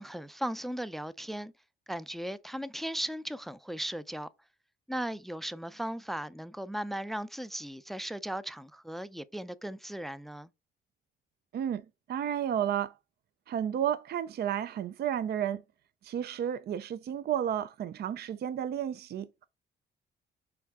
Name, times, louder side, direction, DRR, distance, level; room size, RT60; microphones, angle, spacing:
voice 1, 0.0-1.5 1.9-4.3 4.9-10.5, right 1 dB, ahead, 0.4 m, -37 dB
voice 2, 12.1-12.9 13.5-15.6 16.0-19.5, right 9 dB, 55° right, 0.5 m, -32 dB
5.8 x 4.6 x 3.5 m
cardioid pair, 90°, 20 cm